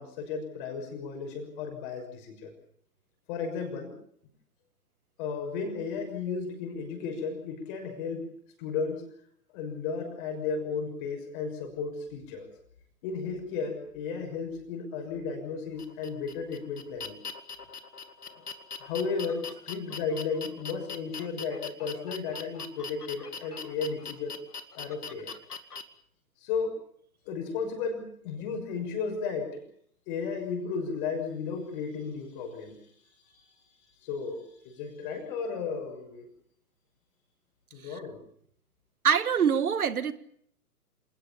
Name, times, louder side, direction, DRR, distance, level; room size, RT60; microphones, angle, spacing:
voice 1, 0.0-2.5 3.3-4.0 5.2-8.3 8.6-9.0 9.5-12.5 13.0-17.2 18.3-18.4 18.8-24.4 24.8-25.3 26.4-26.8 27.3-29.6 30.1-32.8 34.0-36.3 37.7-38.2, left 5 dB, 35° left, 6.4 m, -34 dB
sound 1, 15.8-25.8, left 5 dB, 80° left, 2.2 m, -41 dB
voice 2, 39.0-40.1, right 7 dB, 70° right, 2.0 m, -24 dB
27.5 x 20.0 x 7.2 m
figure-of-eight pair, 130°, 46 cm